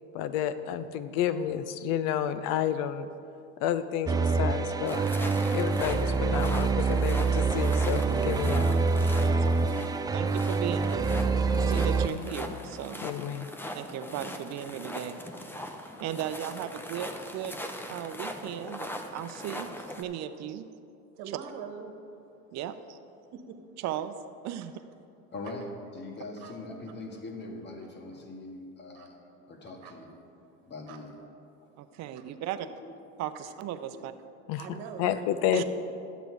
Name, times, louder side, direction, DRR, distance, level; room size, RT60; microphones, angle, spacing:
voice 1, 0.1-3.1 3.6-5.2 5.5-8.8 13.0-13.5 34.5-34.6 35.0-35.6, left 10 dB, 70° left, 12 dB, 0.7 m, -30 dB
sound 1, 4.1-12.1, right 4 dB, 10° right, 0.3 m, -26 dB
sound 2, 4.9-20.0, equal, 5° left, 0.7 m, -40 dB
voice 2, 9.2-13.0 13.7-15.2 15.5-17.6 17.9-19.7 20.0-20.7 21.3-21.4 22.5-23.0 23.8-24.2 24.4-24.8 31.8-32.7 33.2-34.1 35.5-35.6, right 10 dB, 55° right, 11 dB, 0.7 m, -37 dB
voice 3, 21.2-21.9 23.3-23.6 26.4-26.5 28.9-29.1 29.8-29.9 30.9-31.0 32.1-32.2 34.6-35.1, right 7 dB, 75° right, 6 dB, 1.3 m, -42 dB
voice 4, 25.3-25.7 25.9-29.2 29.5-30.2 30.7-31.3 32.8-32.9 33.9-34.0, left 2 dB, 30° left, 2 dB, 1.7 m, -42 dB
11.0 x 8.1 x 4.7 m, 2.6 s
supercardioid pair, 110°, 33 cm